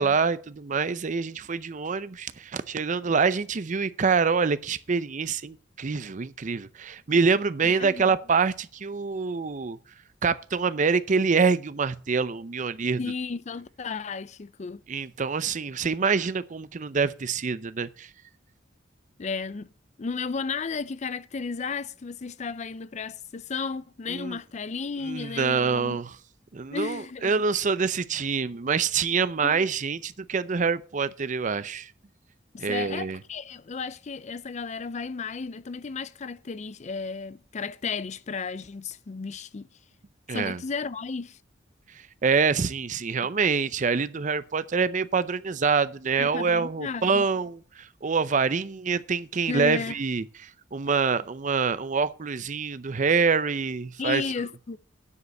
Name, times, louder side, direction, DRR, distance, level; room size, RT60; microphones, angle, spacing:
voice 1, 0.0-9.8 10.2-13.0 14.9-18.1 24.1-24.4 25.0-26.1 26.5-31.9 32.6-33.2 40.3-40.6 41.9-54.2, right 5 dB, 45° right, 0.6 m, -26 dB
voice 2, 7.6-8.0 13.0-14.8 19.2-19.7 20.0-26.0 26.7-27.3 29.4-29.7 32.5-39.7 40.3-41.4 46.2-47.3 49.5-50.0 54.0-54.8, left 5 dB, 40° left, 0.5 m, -34 dB
9.6 x 5.1 x 8.0 m
head